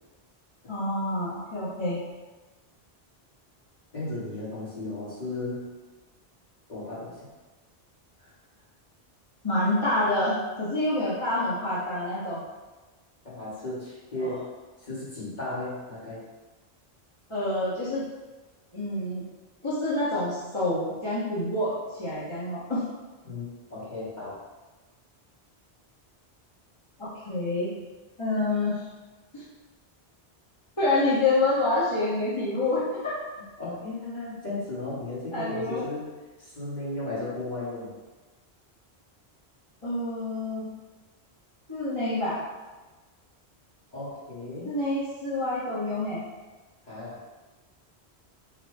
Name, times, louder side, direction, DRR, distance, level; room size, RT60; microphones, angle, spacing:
voice 1, 0.7-2.0 9.4-12.4 14.2-14.4 17.3-18.0 18.7-19.3 19.6-22.8 27.0-27.7 28.2-28.8 29.3-29.4 30.8-33.2 35.3-35.8 39.8-40.6 41.7-42.4 44.6-46.2, left 2 dB, 30° left, -10 dB, 1.0 m, -27 dB
voice 2, 3.9-5.7 6.7-7.3 8.2-8.3 13.2-14.4 14.8-16.2 23.2-24.4 33.6-36.1 36.4-37.9 43.9-44.7 46.8-47.2, left 2 dB, 45° left, -9 dB, 1.6 m, -35 dB
4.1 x 2.2 x 4.6 m, 1.2 s
omnidirectional pair, 1.1 m